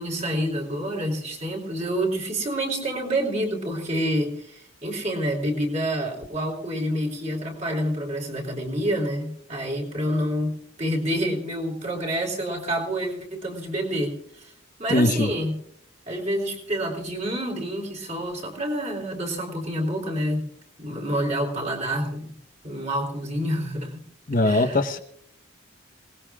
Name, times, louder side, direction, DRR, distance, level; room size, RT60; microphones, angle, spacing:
voice 1, 0.0-14.5 14.8-15.6 16.1-20.5 20.8-22.3 22.6-24.1 24.4-24.8, equal, 35° right, -1 dB, 3.8 m, -28 dB
voice 2, 14.9-15.3 24.3-25.0, left 1 dB, 45° left, 6 dB, 1.0 m, -21 dB
27.5 x 19.0 x 2.4 m, 0.69 s
head